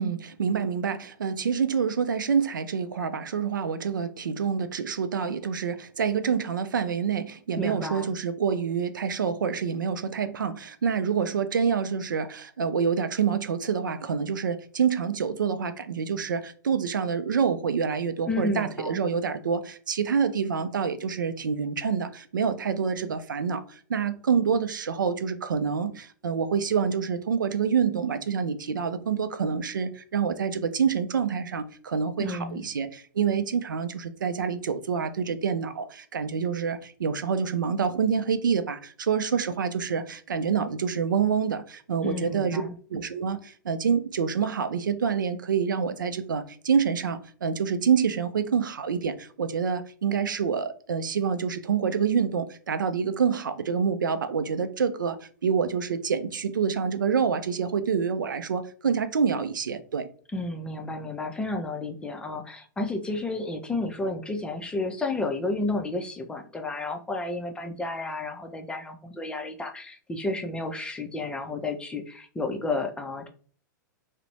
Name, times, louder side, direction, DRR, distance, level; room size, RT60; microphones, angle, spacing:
voice 1, 0.0-42.6 42.9-60.1, right 6 dB, 80° right, 0.4 m, -27 dB
voice 2, 7.6-8.1 18.3-19.0 32.2-32.7 42.0-42.7 60.3-73.3, left 2 dB, 10° left, 0.4 m, -31 dB
2.5 x 2.0 x 3.0 m
figure-of-eight pair, 100°, 11 cm